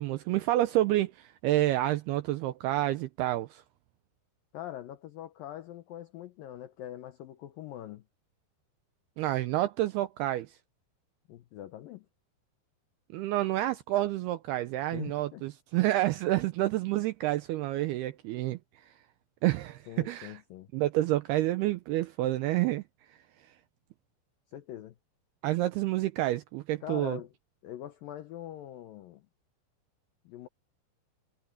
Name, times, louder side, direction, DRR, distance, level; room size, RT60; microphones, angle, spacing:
voice 1, 0.0-3.6 9.2-10.6 13.1-18.6 19.4-20.4 20.7-22.8 25.4-27.2, right 15 dB, 85° right, 2.3 m, -29 dB
voice 2, 4.5-8.0 11.3-12.1 14.9-15.4 19.9-20.7 24.5-25.0 26.8-27.3 27.6-29.3 30.3-30.5, left 12 dB, 85° left, 2.0 m, -43 dB
omnidirectional pair, 5.3 m